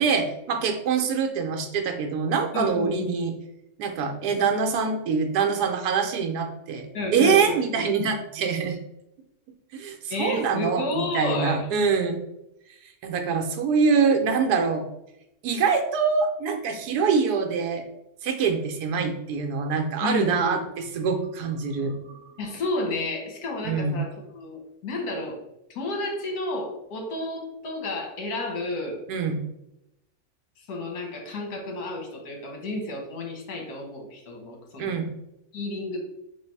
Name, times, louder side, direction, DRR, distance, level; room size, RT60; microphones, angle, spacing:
voice 1, 0.0-3.3 3.8-8.8 9.7-12.2 13.0-14.8 15.4-17.8 18.2-22.2 23.6-24.0 29.1-29.4 34.8-35.1, right 5 dB, 85° right, 4 dB, 1.2 m, -24 dB
voice 2, 2.5-3.2 6.9-7.6 10.1-11.6 20.0-20.6 22.4-25.4 25.7-29.0 30.7-34.9 35.5-36.0, left 2 dB, 75° left, 1 dB, 1.4 m, -31 dB
3.4 x 2.6 x 4.4 m, 0.85 s
omnidirectional pair, 1.7 m